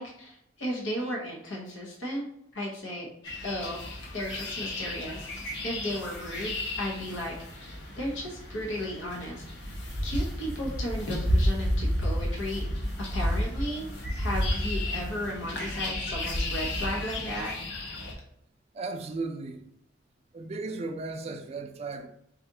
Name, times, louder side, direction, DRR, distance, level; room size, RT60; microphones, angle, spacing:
voice 1, 0.0-2.2 2.5-3.1 3.4-3.8 4.1-5.3 5.6-9.4 9.7-12.6 13.1-13.9 14.2-17.5, equal, 90° left, 0.9 m, -35 dB
sound 1, 3.2-18.1, left 1 dB, 65° left, 0.8 m, -32 dB
voice 2, 18.7-19.7 20.3-22.1, right 3 dB, 35° right, 0.3 m, -36 dB
4.2 x 2.4 x 2.6 m
head